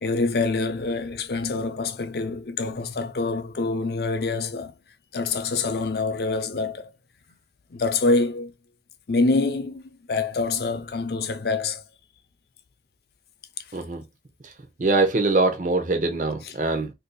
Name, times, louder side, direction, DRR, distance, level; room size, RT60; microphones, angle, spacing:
voice 1, 0.0-4.7 5.1-6.9 7.7-8.5 9.1-9.8 10.1-11.8 16.4-16.5, left 3 dB, 60° left, 0.5 m, -25 dB
voice 2, 13.7-14.0 14.4-14.5 14.8-16.9, right 3 dB, 45° right, 0.6 m, -23 dB
3.9 x 2.6 x 2.2 m
head